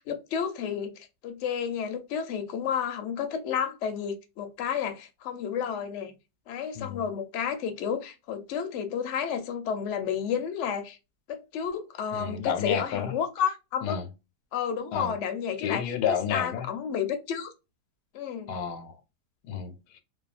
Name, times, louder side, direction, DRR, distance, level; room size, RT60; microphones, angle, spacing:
voice 1, 0.0-6.1 6.5-11.0 11.3-14.0 14.5-15.9 16.3-17.5 18.1-18.5, left 7 dB, 60° left, 0.8 m, -31 dB
voice 2, 6.7-7.1 12.1-13.2 13.8-14.1 14.9-15.1 15.6-16.7 18.5-19.0 19.4-20.0, left 8 dB, 85° left, 1.2 m, -31 dB
2.7 x 2.2 x 2.3 m
omnidirectional pair, 1.7 m